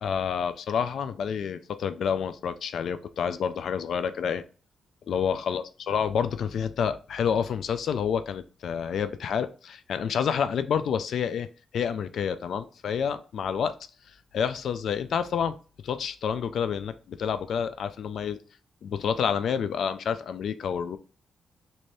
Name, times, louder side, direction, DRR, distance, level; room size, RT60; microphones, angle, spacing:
voice 1, 0.0-4.4 5.1-11.5 11.7-13.7 14.3-15.5 15.8-18.4 18.8-21.0, left 7 dB, 75° left, 12 dB, 0.3 m, -28 dB
2.7 x 2.6 x 3.2 m, 0.36 s
cardioid pair, 80°, 0 cm